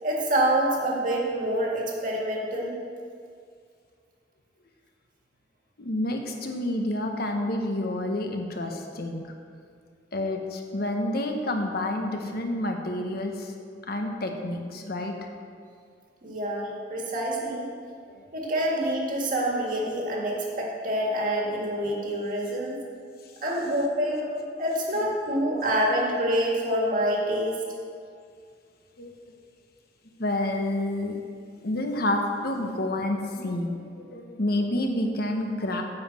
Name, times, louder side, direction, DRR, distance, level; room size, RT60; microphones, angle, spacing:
voice 1, 0.0-2.8 16.2-17.7 18.3-22.8 23.4-27.6, right 1 dB, 50° right, -2 dB, 2.0 m, -26 dB
voice 2, 5.8-9.3 10.1-13.5 13.9-15.1 18.1-18.2 29.0-29.1 30.2-31.2 31.6-35.8, left 1 dB, 55° left, 3 dB, 1.1 m, -29 dB
9.3 x 5.6 x 7.4 m, 2.2 s
head